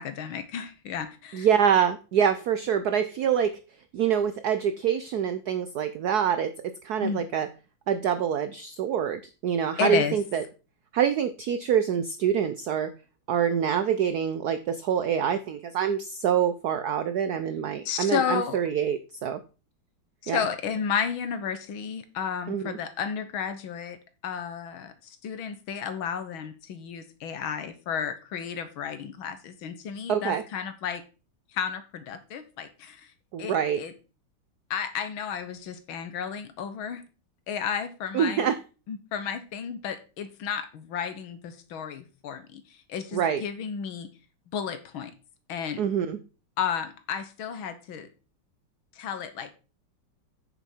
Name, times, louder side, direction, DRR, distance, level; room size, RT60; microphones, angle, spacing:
voice 1, 0.0-1.5 7.0-7.3 9.8-10.2 17.9-18.6 20.2-24.0 24.2-31.0 31.5-33.1 33.4-33.9 34.7-37.0 37.5-38.5 38.9-44.1 44.5-45.1 45.5-45.8 46.6-48.1 49.0-49.5, left 7 dB, 70° left, 10 dB, 1.8 m, -32 dB
voice 2, 1.3-3.6 3.9-7.5 7.9-10.4 10.9-12.9 13.3-19.4 20.3-20.4 22.5-22.8 30.1-30.4 33.3-33.8 38.1-38.6 43.1-43.4 45.8-46.2, right 8 dB, 80° right, 11 dB, 0.8 m, -25 dB
8.3 x 7.0 x 4.4 m, 0.33 s
omnidirectional pair, 2.4 m